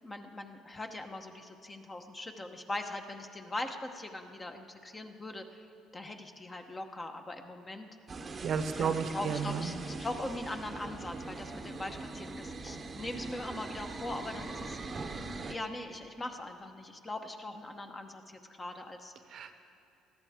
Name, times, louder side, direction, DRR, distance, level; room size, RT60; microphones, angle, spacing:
voice 1, 0.0-5.7 5.9-7.9 8.8-15.1 15.5-19.1, left 2 dB, 20° left, 5 dB, 1.0 m, -41 dB
sound 1, 8.1-15.6, right 3 dB, 25° right, 0.9 m, -42 dB
voice 2, 8.4-9.7 19.3-19.5, right 6 dB, 50° right, 9 dB, 0.9 m, -32 dB
20.0 x 13.5 x 3.6 m, 2.7 s
cardioid pair, 120°, 0 cm